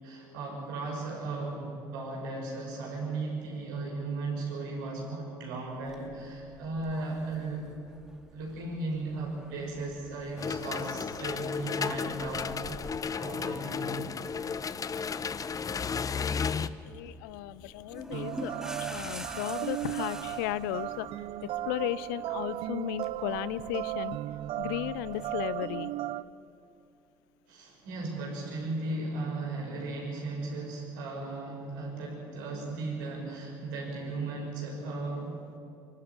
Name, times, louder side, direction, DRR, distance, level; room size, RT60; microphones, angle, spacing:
voice 1, 0.0-7.6 8.3-12.8 13.1-14.1 19.0-19.2 27.5-35.4, right 3 dB, 80° right, -1 dB, 5.9 m, -36 dB
sound 1, 5.9-25.5, right 1 dB, 5° right, 2.4 m, -49 dB
sound 2, 10.4-16.7, left 6 dB, 35° left, 0.8 m, -33 dB
voice 2, 16.4-18.5 18.9-21.1 21.7-24.2 24.6-25.9, left 16 dB, 80° left, 18 dB, 0.6 m, -35 dB
sound 3, 18.1-26.2, right 14 dB, 60° right, 0.6 m, -36 dB
24.5 x 12.5 x 9.7 m, 2.6 s
hypercardioid pair, 60°, 11 cm